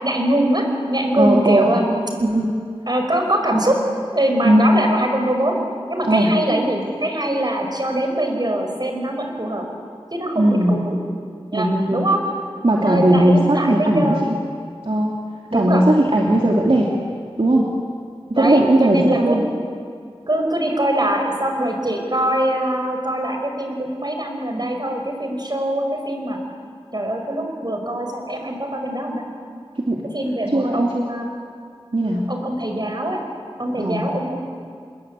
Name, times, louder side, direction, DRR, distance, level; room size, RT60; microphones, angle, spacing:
voice 1, 0.0-1.9 2.9-3.8 4.1-5.5 5.9-9.7 10.1-10.9 11.5-12.2 12.8-14.3 15.5-15.8 18.4-19.4 20.3-26.4 26.9-29.2 30.1-31.3 32.3-33.2 33.6-34.4, right 1 dB, 45° right, 3 dB, 5.3 m, -22 dB
voice 2, 1.2-1.7 2.2-2.5 4.4-4.8 6.1-6.3 10.3-10.9 11.5-12.1 12.6-14.1 14.9-15.1 15.5-16.9 17.4-17.7 18.3-19.4 29.8-30.0 30.5-31.1 31.9-32.2 33.8-34.1, right 1 dB, 65° right, -2 dB, 2.8 m, -17 dB
26.5 x 22.0 x 8.5 m, 2.2 s
wide cardioid pair, 40°, 10 cm